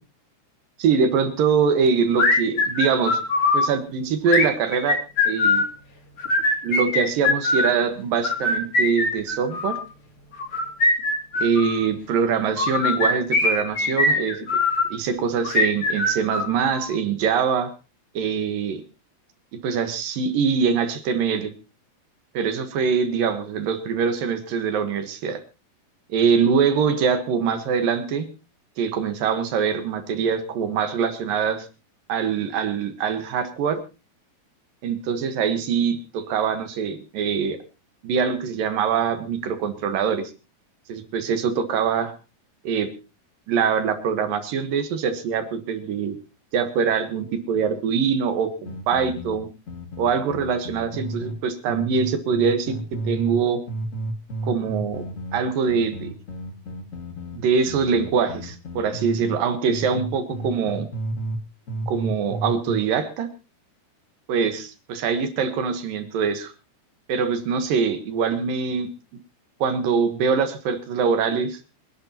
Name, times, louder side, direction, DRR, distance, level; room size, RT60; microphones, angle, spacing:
voice 1, 0.8-3.2 3.5-5.0 5.2-5.6 6.6-9.8 11.4-14.5 14.9-17.7 18.1-18.8 19.6-21.5 22.3-25.4 26.1-28.3 28.8-31.7 32.1-33.8 34.8-37.6 38.0-40.3 40.9-42.1 42.6-42.9 43.5-46.2 46.5-49.5 50.0-52.8 53.0-53.6 54.4-55.0 55.3-56.1 57.3-60.9 61.9-63.3 64.3-66.5 67.1-68.9 69.6-71.6, right 6 dB, 65° right, 8 dB, 2.9 m, -23 dB
sound 1, 2.2-3.7 4.3-5.7 6.2-7.7 8.2-9.8 10.4-11.8 12.6-14.9 15.4-16.9, left 2 dB, 35° left, 3.0 m, -21 dB
sound 2, 48.6-51.4 51.7-53.4 53.7-59.4 59.7-61.4 61.7-62.8, right 1 dB, 90° left, 0.7 m, -32 dB
26.0 x 11.5 x 2.9 m, 0.30 s
omnidirectional pair, 4.6 m